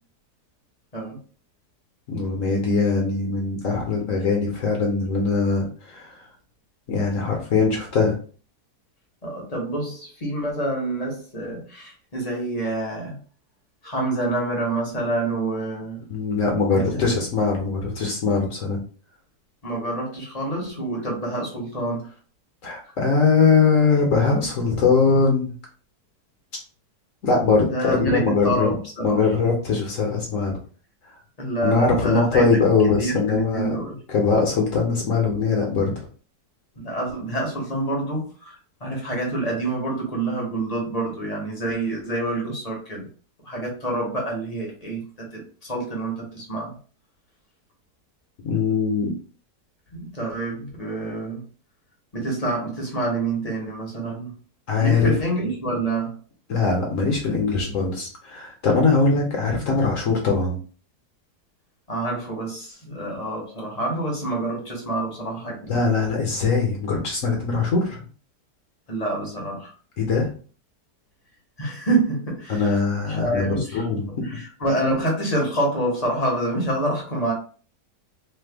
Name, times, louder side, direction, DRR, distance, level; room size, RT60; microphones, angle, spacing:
voice 1, 2.1-6.1 6.9-8.1 16.1-18.8 22.6-25.5 27.2-28.7 29.0-30.6 31.6-35.9 48.4-49.1 54.7-55.1 56.5-60.6 65.7-68.0 70.0-70.3 72.5-74.1, left 4 dB, 60° left, 0 dB, 1.0 m, -21 dB
voice 2, 9.2-13.2 13.8-16.0 16.7-17.0 19.6-22.0 27.6-29.2 31.4-32.5 33.0-34.0 36.8-43.1 43.4-46.8 49.9-51.4 52.1-54.3 54.8-56.2 61.9-65.6 68.9-69.7 71.6-72.8 73.1-73.8 74.2-77.3, right 2 dB, 30° left, -2 dB, 0.7 m, -27 dB
3.2 x 2.2 x 3.3 m, 0.41 s
omnidirectional pair, 1.8 m